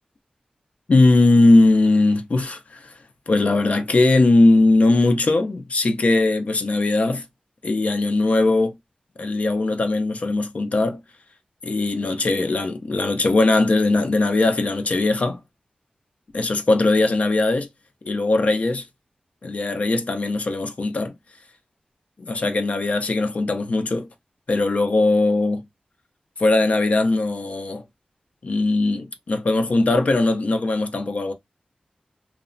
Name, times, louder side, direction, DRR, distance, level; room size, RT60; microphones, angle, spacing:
voice 1, 0.9-2.9 3.3-7.2 7.6-8.7 9.2-11.0 11.6-15.4 16.3-17.7 18.1-18.8 19.4-21.1 22.3-24.1 24.5-25.6 26.4-27.8 28.4-31.3, left 2 dB, 55° left, 0.4 m, -19 dB
2.7 x 2.1 x 2.5 m
wide cardioid pair, 80°, 3 cm